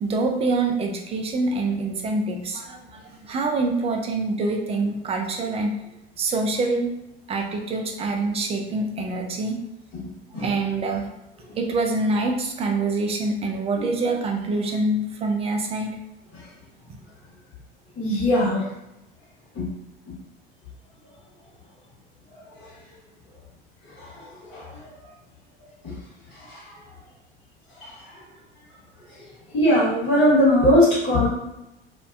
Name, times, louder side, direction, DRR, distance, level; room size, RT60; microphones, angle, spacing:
voice 1, 0.0-5.8 6.2-6.9 7.3-9.6 10.4-11.1 11.6-15.9, right 3 dB, 20° right, 2 dB, 0.4 m, -25 dB
voice 2, 18.0-18.6 19.5-19.7 24.0-24.1 24.5-24.7 26.5-26.6 27.8-27.9 29.5-31.3, left 1 dB, 45° left, -7 dB, 1.2 m, -19 dB
2.6 x 2.2 x 2.3 m, 0.92 s
figure-of-eight pair, 70°, 30 cm